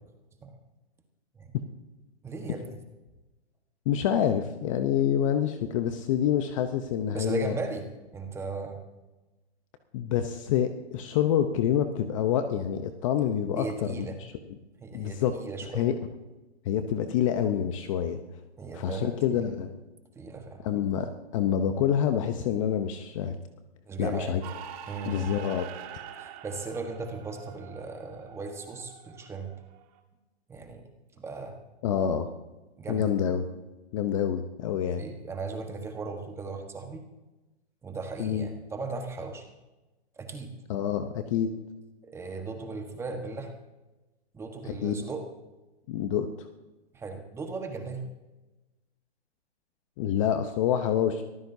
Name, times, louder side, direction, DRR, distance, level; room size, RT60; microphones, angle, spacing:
voice 1, 2.2-2.8 7.1-7.9 8.1-8.8 13.6-14.2 14.8-15.9 18.6-19.4 20.1-20.6 23.9-24.3 24.9-25.5 26.1-29.5 30.5-30.8 31.2-31.6 32.8-33.1 35.0-37.0 37.8-39.5 40.2-40.5 42.0-43.5 44.3-45.2 46.9-48.1, right 4 dB, 10° right, 4 dB, 1.3 m, -37 dB
voice 2, 3.9-7.6 9.9-14.3 14.9-15.3 15.7-15.9 16.6-18.2 18.7-19.7 20.6-23.4 24.0-24.4 25.0-25.7 31.8-32.3 32.9-33.4 33.9-35.0 38.2-38.5 40.7-41.5 44.7-44.9 45.9-46.5 50.0-51.2, left 9 dB, 30° left, 8 dB, 0.8 m, -27 dB
sound 1, 24.4-30.0, right 9 dB, 35° right, 1.8 m, -45 dB
24.0 x 14.5 x 2.7 m, 1.1 s
hypercardioid pair, 150°, 34 cm